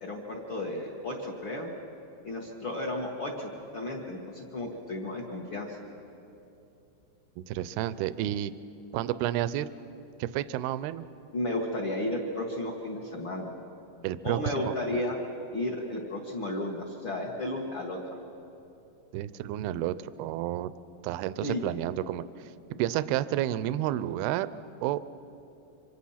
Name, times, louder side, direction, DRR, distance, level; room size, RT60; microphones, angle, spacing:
voice 1, 0.0-1.7 2.2-5.8 11.3-13.5 14.2-15.2 15.5-18.0 21.4-21.7, left 1 dB, 50° left, -3 dB, 1.5 m, -33 dB
voice 2, 7.4-8.5 8.9-9.7 10.2-11.1 14.0-15.0 19.1-20.7 21.0-22.2 22.8-24.5 24.8-25.0, right 13 dB, 80° right, 14 dB, 2.3 m, -30 dB
26.5 x 25.0 x 5.8 m, 2.8 s
omnidirectional pair, 5.0 m